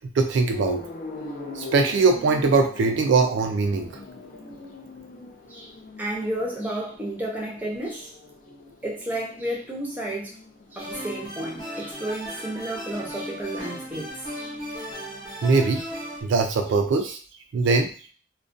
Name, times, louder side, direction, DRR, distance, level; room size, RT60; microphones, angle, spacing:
voice 1, 0.2-0.8 1.6-3.9 15.4-15.8 16.2-17.2 17.5-17.9, right 4 dB, 65° right, 4 dB, 0.3 m, -21 dB
sound 1, 0.5-16.4, left 3 dB, 45° left, 0.5 m, -42 dB
voice 2, 6.0-8.1 8.8-10.3 10.7-14.6, right 1 dB, 10° right, -2 dB, 0.6 m, -32 dB
sound 2, 10.8-16.2, equal, 20° left, 0.8 m, -36 dB
2.3 x 2.1 x 2.5 m, 0.40 s
head